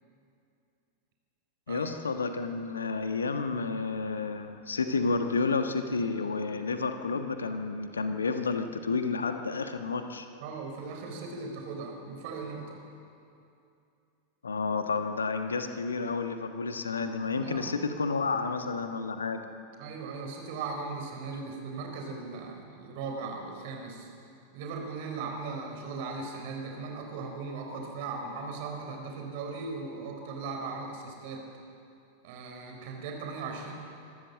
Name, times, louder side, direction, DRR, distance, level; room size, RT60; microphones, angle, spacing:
voice 1, 1.7-10.3 14.4-19.4, left 4 dB, 75° left, 7 dB, 1.3 m, -30 dB
voice 2, 10.4-12.9 17.4-17.7 19.8-24.1 24.5-31.4 32.2-33.7, right 4 dB, 50° right, 3 dB, 4.2 m, -38 dB
25.5 x 13.5 x 7.5 m, 2.6 s
figure-of-eight pair, 90°, 0 cm